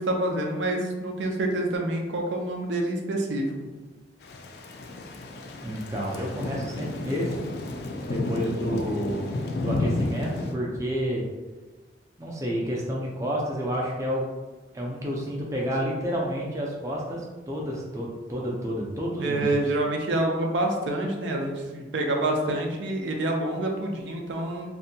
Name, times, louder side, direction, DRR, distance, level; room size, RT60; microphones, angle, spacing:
voice 1, 0.0-3.7 19.2-24.7, right 1 dB, 85° right, 1 dB, 0.4 m, -27 dB
Thunder / Rain, 4.2-10.5, left 2 dB, 60° left, 0.3 m, -31 dB
voice 2, 5.6-7.4 8.0-11.2 12.2-14.3 14.7-19.5, equal, 15° right, -3 dB, 0.4 m, -30 dB
2.6 x 2.2 x 2.6 m, 1.2 s
head